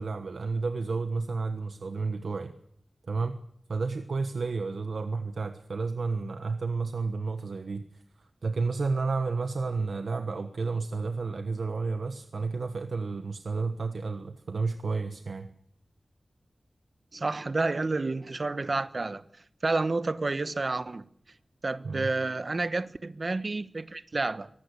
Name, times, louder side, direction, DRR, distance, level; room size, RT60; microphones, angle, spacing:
voice 1, 0.0-2.5 3.1-3.4 3.7-7.9 8.4-15.5 21.8-22.1, right 4 dB, 80° right, 1.3 m, -31 dB
voice 2, 17.1-19.2 19.6-21.0 21.6-24.5, right 3 dB, 50° right, 1.1 m, -30 dB
24.0 x 19.0 x 8.3 m
wide cardioid pair, 95°, 0 cm